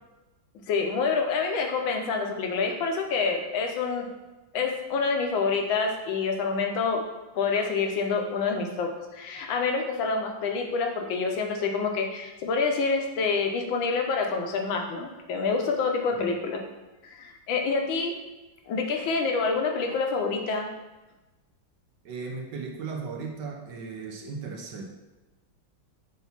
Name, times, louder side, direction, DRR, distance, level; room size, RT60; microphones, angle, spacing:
voice 1, 0.7-4.1 4.5-7.0 7.3-16.6 17.0-18.1 18.7-20.7, left 4 dB, 75° left, 3 dB, 1.6 m, -27 dB
voice 2, 22.0-24.8, right 4 dB, 65° right, 1 dB, 1.3 m, -36 dB
7.0 x 2.7 x 5.6 m, 1.1 s
omnidirectional pair, 2.2 m